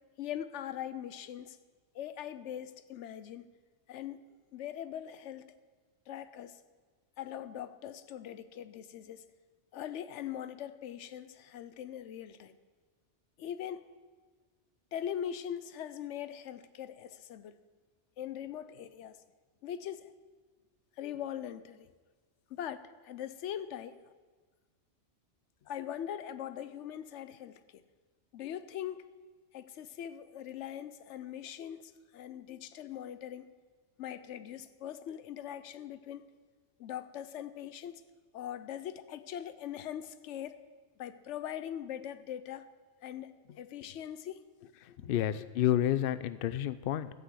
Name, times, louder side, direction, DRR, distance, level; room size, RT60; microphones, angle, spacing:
voice 1, 0.2-1.6 1.9-3.5 3.9-4.2 4.5-5.5 6.1-6.6 7.2-9.2 9.7-12.5 13.4-13.9 14.9-17.6 18.2-19.2 19.6-20.1 21.0-21.9 22.5-24.0 25.6-27.8 28.3-29.1 29.5-33.5 34.0-36.3 36.8-38.0 38.3-40.6 41.0-42.7 43.0-44.4 45.0-45.1, left 10 dB, 85° left, 13 dB, 0.9 m, -41 dB
voice 2, 44.8-47.1, left 11 dB, 60° left, 15 dB, 0.6 m, -30 dB
12.5 x 6.1 x 8.1 m, 1.4 s
omnidirectional pair, 1.2 m